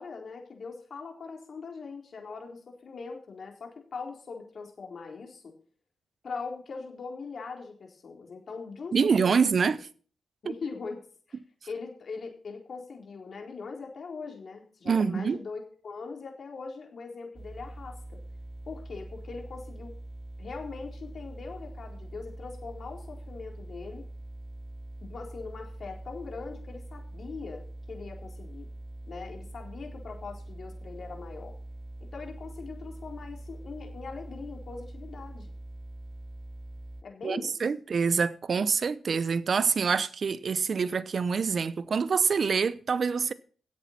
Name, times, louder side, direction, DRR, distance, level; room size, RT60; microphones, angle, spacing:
voice 1, 0.0-5.5 6.2-9.8 10.4-11.0 11.3-11.4 11.7-18.2 18.7-19.9 20.4-24.1 25.0-28.7 29.1-31.6 32.0-35.5 37.0-37.6, left 4 dB, 60° left, 3.8 m, -41 dB
voice 2, 8.9-9.8 14.8-15.4 37.2-43.3, right 5 dB, 55° right, 0.8 m, -26 dB
sound 1, 17.3-37.0, right 1 dB, 30° right, 1.4 m, -43 dB
12.5 x 8.4 x 5.7 m
supercardioid pair, 55°, 0 cm